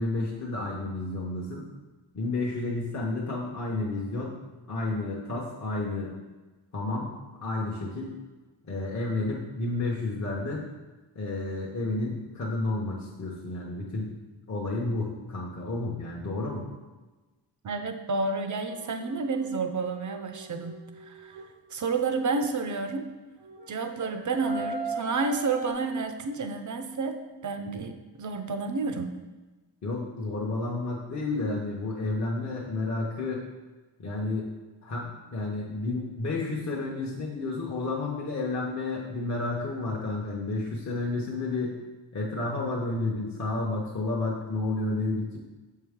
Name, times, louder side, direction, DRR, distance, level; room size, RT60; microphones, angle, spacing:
voice 1, 0.0-1.6 2.1-4.3 4.7-6.2 6.7-7.1 7.4-8.1 8.7-10.6 11.2-14.2 14.5-16.6 29.8-33.4 34.0-34.5 34.8-41.7 42.1-45.4, left 2 dB, 40° left, -4 dB, 0.8 m, -31 dB
voice 2, 17.6-21.4 21.7-23.1 23.7-27.2 27.4-29.2, right 4 dB, 45° right, 6 dB, 0.5 m, -30 dB
sound 1, 18.7-21.7 23.4-25.7, right 2 dB, 85° right, 1.0 m, -40 dB
7.0 x 4.6 x 3.5 m, 1.2 s
wide cardioid pair, 170°, 45 cm